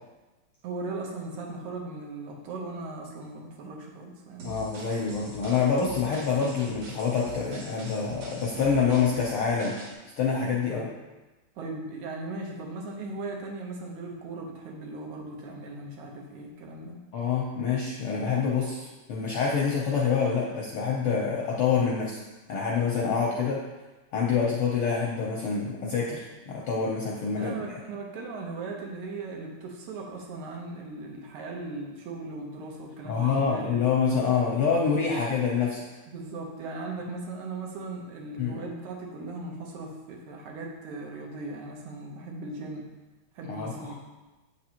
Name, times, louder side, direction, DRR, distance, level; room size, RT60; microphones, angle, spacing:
voice 1, 0.6-4.8 10.7-10.9 11.6-17.0 27.3-33.8 36.1-42.9 43.4-43.9, right 3 dB, 85° right, -1 dB, 2.4 m, -38 dB
voice 2, 4.4-9.7 10.2-10.9 17.1-22.2 22.5-23.6 24.1-27.5 33.0-35.8 38.4-38.6 43.5-43.9, left 6 dB, 75° left, -3 dB, 1.3 m, -26 dB
sound 1, 4.4-9.9, equal, 65° right, 2.2 m, -42 dB
7.8 x 5.3 x 2.9 m, 1.1 s
omnidirectional pair, 3.3 m